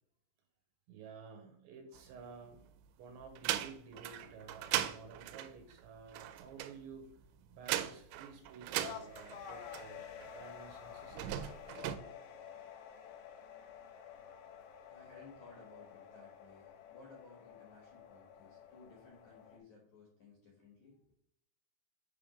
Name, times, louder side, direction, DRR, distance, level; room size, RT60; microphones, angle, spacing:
voice 1, 0.9-2.7 3.0-7.2 7.5-11.4, right 5 dB, 75° right, 3 dB, 3.1 m, -53 dB
sound 1, 1.9-2.8 3.2-10.3 11.0-12.0, right 12 dB, 90° right, 3.3 m, -39 dB
sound 2, 8.8-19.6, left 8 dB, 80° left, 2.8 m, -51 dB
voice 2, 14.9-21.1, left 3 dB, 55° left, -2 dB, 2.1 m, -58 dB
9.0 x 3.7 x 5.1 m, 0.68 s
omnidirectional pair, 5.8 m